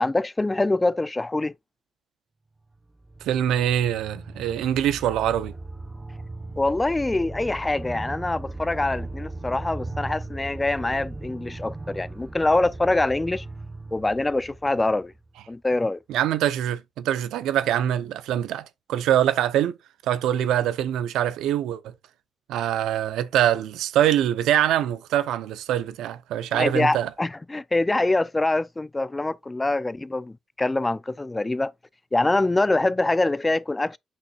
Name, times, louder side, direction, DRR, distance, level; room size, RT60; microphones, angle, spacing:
voice 1, 0.0-1.5 6.6-13.5 13.9-15.1 15.5-16.0 26.5-31.7 32.1-34.0, left 2 dB, 15° left, 0.4 m, -24 dB
sound 1, 2.7-15.6, right 2 dB, 15° right, 1.1 m, -38 dB
voice 2, 3.2-5.5 16.1-19.8 20.0-21.9 22.5-27.1, right 11 dB, 85° right, 0.7 m, -24 dB
8.0 x 5.8 x 2.4 m
cardioid pair, 90°, 0 cm